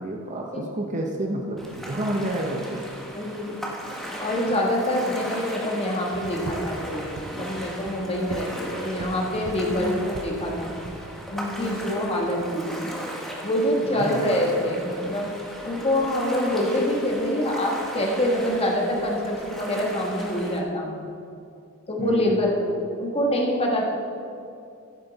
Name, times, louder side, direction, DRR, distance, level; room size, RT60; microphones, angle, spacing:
voice 1, 0.0-2.9 9.8-10.0 13.8-14.4 22.0-22.4, right 1 dB, 35° right, 1 dB, 0.8 m, -29 dB
Ocean, 1.6-20.6, equal, ahead, 1.2 m, -37 dB
voice 2, 3.1-3.6 4.2-10.8 11.3-12.6 13.4-15.3 15.6-21.1 21.9-22.7 23.0-23.8, left 1 dB, 30° left, -1 dB, 1.4 m, -25 dB
sound 1, 6.1-13.6, right 3 dB, 85° right, 0.6 m, -40 dB
14.5 x 7.4 x 4.1 m, 2.6 s
head